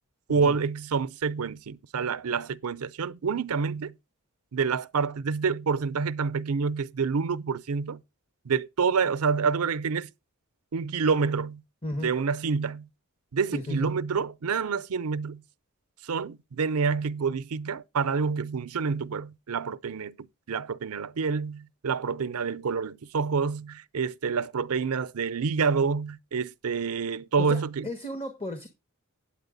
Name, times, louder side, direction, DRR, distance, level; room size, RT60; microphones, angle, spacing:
voice 1, 0.3-3.9 4.5-8.0 8.4-10.1 10.7-11.6 12.0-12.9 13.3-15.4 16.0-27.9, right 5 dB, 80° right, 0.6 m, -28 dB
voice 2, 11.8-12.1 13.5-13.9 27.4-28.7, left 1 dB, 25° left, 1.4 m, -34 dB
8.8 x 8.6 x 4.0 m
head